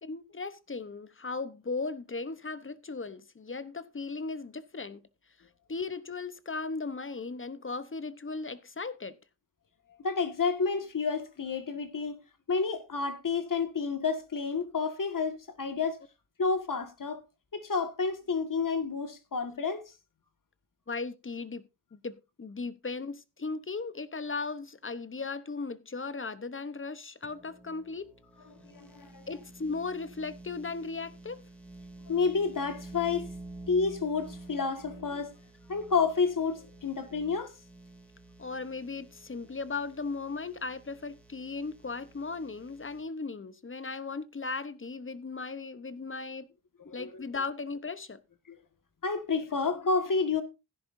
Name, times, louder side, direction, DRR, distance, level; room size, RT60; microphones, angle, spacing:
voice 1, 0.0-5.0 5.7-9.2 20.9-21.6 21.9-28.1 29.3-31.4 38.4-46.5 46.9-48.2, left 4 dB, 30° left, 0.9 m, -37 dB
voice 2, 10.0-12.2 12.5-16.0 16.4-17.2 17.5-19.9 28.6-29.3 32.1-33.3 33.7-35.3 35.7-37.5 46.9-47.2 48.5-48.6 49.0-50.4, left 4 dB, 45° left, 1.8 m, -30 dB
sound 1, 27.2-43.0, right 2 dB, 5° left, 2.7 m, -50 dB
16.0 x 10.5 x 2.6 m
cardioid pair, 65°, 44 cm